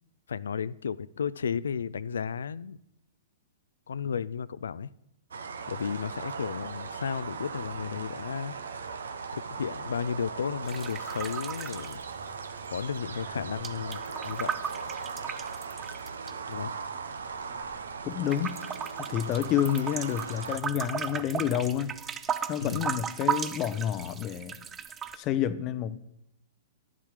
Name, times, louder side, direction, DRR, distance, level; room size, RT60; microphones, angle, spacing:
voice 1, 0.3-2.8 3.9-4.9 5.7-8.6 9.3-12.0 12.7-14.5 16.5-16.7 22.6-22.9, left 7 dB, 80° left, 0.3 m, -33 dB
sound 1, 5.3-20.6, right 5 dB, 85° right, 0.8 m, -39 dB
sound 2, 10.6-12.7 13.0-16.3 16.9-17.9 18.3-25.2, right 7 dB, 20° right, 0.5 m, -36 dB
voice 2, 18.0-18.6 19.1-21.9 22.5-24.7 25.1-26.0, left 10 dB, 35° left, 0.6 m, -29 dB
10.5 x 7.3 x 4.9 m
hypercardioid pair, 120°, 0 cm